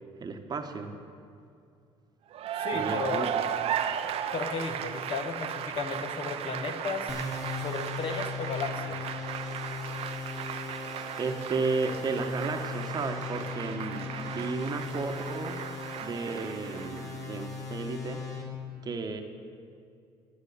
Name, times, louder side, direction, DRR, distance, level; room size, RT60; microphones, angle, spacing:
voice 1, 0.2-0.9 2.7-3.3 10.9-15.7 16.0-18.2 18.8-19.2, right 4 dB, 35° right, 5 dB, 1.1 m, -33 dB
Cheering / Applause, 2.3-17.2, right 9 dB, 65° right, 0.7 m, -36 dB
voice 2, 2.5-3.3 4.3-7.2 7.6-9.1, left 4 dB, 55° left, 5 dB, 1.3 m, -34 dB
sound 1, 7.1-18.4, left 4 dB, 30° left, 2.4 m, -39 dB
11.5 x 9.0 x 6.8 m, 2.4 s
cardioid pair, 105°, 11 cm